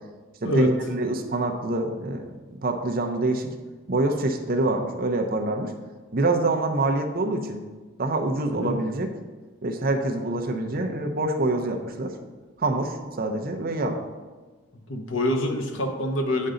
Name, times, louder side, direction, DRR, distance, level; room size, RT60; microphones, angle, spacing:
voice 1, 0.4-3.5 3.9-5.7 6.1-7.6 8.0-9.1 9.6-12.1 12.6-14.0, right 2 dB, 45° right, 4 dB, 0.6 m, -26 dB
voice 2, 8.4-8.8 14.7-16.5, left 1 dB, 60° left, 4 dB, 0.9 m, -26 dB
7.9 x 5.3 x 3.8 m, 1.3 s
head